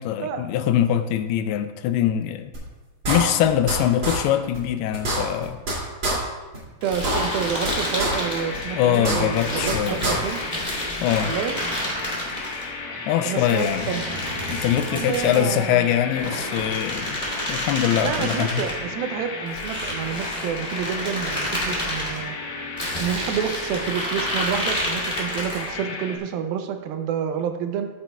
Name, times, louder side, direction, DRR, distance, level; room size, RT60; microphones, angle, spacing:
voice 1, 0.0-2.5 3.1-5.6 8.8-10.2 11.0-11.4 13.1-13.9 14.5-17.2 17.5-18.7, left 10 dB, 90° left, 10 dB, 2.5 m, -23 dB
sound 1, 2.5-2.6 3.0-3.7 4.0-4.2 4.5-4.6 4.9-5.7 6.0-6.1 6.5-6.6 6.9-7.7 8.0-8.1 8.5-8.6 8.9-9.7 10.0-10.1, right 1 dB, 30° right, 2.6 m, -25 dB
sound 2, 6.8-8.7 9.3-12.6 13.4-15.5 16.1-18.8 19.5-22.2 22.8-25.7, equal, 15° left, 2.2 m, -30 dB
voice 2, 6.8-10.4 11.2-11.6 13.2-14.1 14.9-15.9 18.0-22.4 23.0-27.9, right 8 dB, 80° right, 6 dB, 2.3 m, -29 dB
sound 3, 7.7-26.2, left 3 dB, 70° left, 2.8 m, -34 dB
14.0 x 8.7 x 2.3 m, 1.2 s
omnidirectional pair, 4.5 m